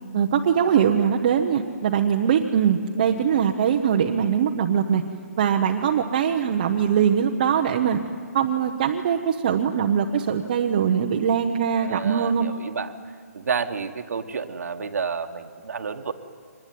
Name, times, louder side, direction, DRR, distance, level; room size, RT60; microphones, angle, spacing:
voice 1, 0.1-5.0 5.4-8.0 8.3-12.5, right 8 dB, 30° right, 1 dB, 0.9 m, -22 dB
voice 2, 11.8-12.9 13.3-16.1, right 5 dB, 70° right, 6 dB, 1.5 m, -30 dB
24.5 x 20.0 x 9.4 m, 2.1 s
hypercardioid pair, 175°, 9 cm